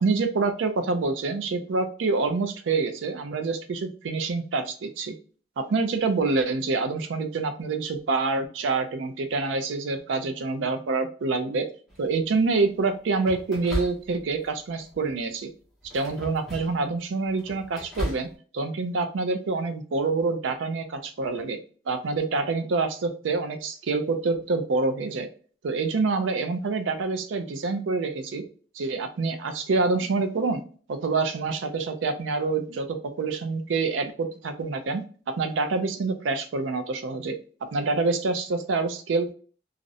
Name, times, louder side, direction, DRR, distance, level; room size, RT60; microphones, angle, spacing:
voice 1, 0.0-5.1 5.6-11.7 12.0-15.5 15.9-18.3 18.5-21.6 21.9-25.3 25.6-28.4 28.7-30.6 30.9-35.0 35.4-37.4 37.7-39.3, right 3 dB, 80° right, 7 dB, 0.4 m, -26 dB
sound 1, 11.9-12.3 13.2-14.5 14.8-15.2 15.8-16.9 17.2-18.3, equal, ahead, 0.6 m, -35 dB
2.4 x 2.0 x 2.6 m, 0.41 s
head